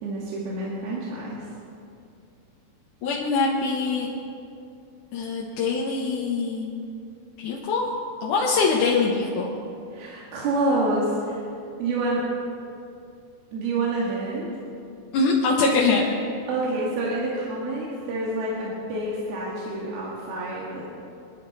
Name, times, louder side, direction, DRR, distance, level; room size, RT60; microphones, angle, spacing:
voice 1, 0.0-1.4 9.9-11.5 11.8-12.2 13.5-14.5 16.5-20.8, right 2 dB, 80° right, -5 dB, 3.9 m, -27 dB
voice 2, 3.0-4.1 5.1-6.7 7.4-7.8 8.2-9.5 15.1-16.0, left 4 dB, 60° left, -4 dB, 2.5 m, -23 dB
27.5 x 11.0 x 4.2 m, 2.5 s
omnidirectional pair, 4.4 m